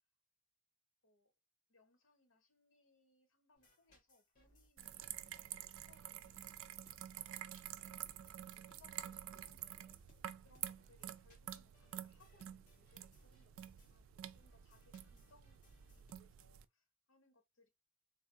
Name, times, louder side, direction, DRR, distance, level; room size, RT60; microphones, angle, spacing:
voice 1, 1.7-6.9 8.1-9.9 10.4-17.7, left 3 dB, 75° left, 1.0 m, -72 dB
sound 1, 3.5-16.2, equal, 40° left, 1.3 m, -70 dB
sound 2, 4.8-16.6, right 11 dB, 80° right, 0.3 m, -50 dB
3.3 x 2.4 x 2.6 m
head